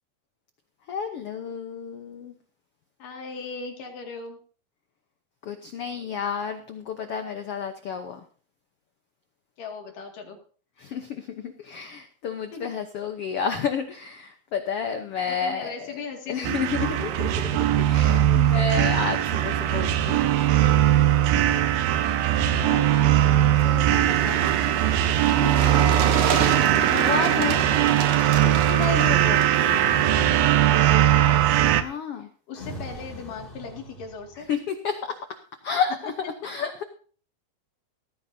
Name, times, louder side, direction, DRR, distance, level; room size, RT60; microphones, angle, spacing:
voice 1, 0.9-2.4 5.4-8.2 10.8-16.0 16.3-17.3 17.7-20.2 22.3-24.5 25.2-26.0 26.8-27.7 28.4-29.6 31.8-32.3 34.4-35.2 35.6-36.1 36.4-36.8, left 6 dB, 90° left, 6 dB, 1.2 m, -31 dB
voice 2, 3.0-4.4 9.6-10.4 12.5-12.7 15.2-16.7 17.2-17.3 21.3-21.5 28.5-28.8 31.0-31.4 32.5-34.5, left 5 dB, 65° left, 2 dB, 3.8 m, -38 dB
sound 1, 16.4-31.8, right 12 dB, 80° right, 2.6 m, -20 dB
sound 2, 23.8-29.5, right 7 dB, 60° right, 2.8 m, -28 dB
sound 3, 29.5-31.4 32.5-34.4, equal, 15° left, 2.1 m, -39 dB
17.5 x 14.5 x 2.8 m, 0.42 s
omnidirectional pair, 4.2 m